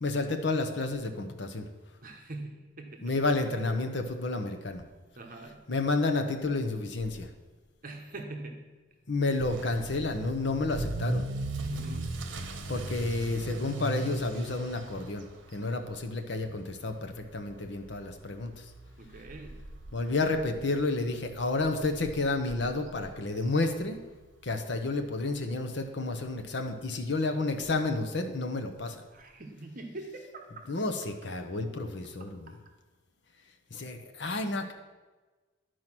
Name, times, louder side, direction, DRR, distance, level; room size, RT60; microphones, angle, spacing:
voice 1, 0.0-1.7 3.0-4.8 5.7-7.3 9.1-11.3 12.7-15.3 15.5-18.6 19.9-24.0 24.4-29.0 30.7-32.5 33.7-34.7, left 3 dB, 65° left, 6 dB, 0.9 m, -30 dB
voice 2, 2.0-3.1 5.2-5.7 7.8-8.8 11.7-12.3 19.0-19.7 29.1-30.7, right 2 dB, 45° right, 3 dB, 1.0 m, -43 dB
Motor vehicle (road) / Accelerating revving vroom, 9.4-24.2 24.5-24.9 25.4-25.5 25.8-25.9 26.2-26.3 27.6-27.7, right 2 dB, 75° right, 0.9 m, -39 dB
11.0 x 4.7 x 6.0 m, 1.3 s
head